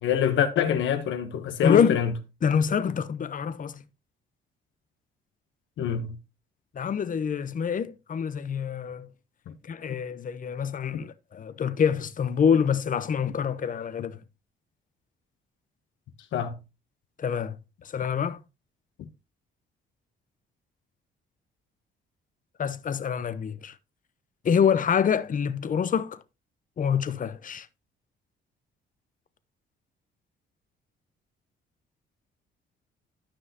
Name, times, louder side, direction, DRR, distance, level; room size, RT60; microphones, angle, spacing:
voice 1, 0.0-2.1 5.8-6.2 9.5-9.6 10.9-11.0 16.3-16.5 19.0-19.1, left 9 dB, 75° left, 1.0 m, -25 dB
voice 2, 1.6-2.0 2.4-3.8 6.7-9.1 9.6-14.2 17.2-17.6 17.8-18.4 22.6-23.8 24.4-26.2 26.8-27.7, left 7 dB, 40° left, 0.8 m, -26 dB
12.5 x 5.5 x 2.8 m
cardioid pair, 90°, 20 cm